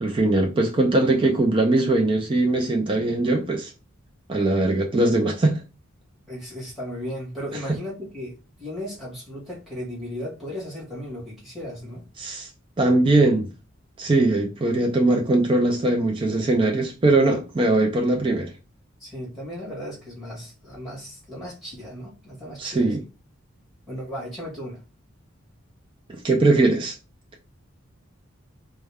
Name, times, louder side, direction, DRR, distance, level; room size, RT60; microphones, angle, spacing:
voice 1, 0.0-3.7 4.3-5.6 7.7-7.8 12.2-12.5 12.8-13.5 14.0-18.5 22.6-23.0 26.1-26.9, right 2 dB, 25° right, 0.4 m, -21 dB
voice 2, 6.3-12.0 19.0-23.0 23.9-24.8, equal, ahead, 1.7 m, -36 dB
4.3 x 2.1 x 3.4 m
head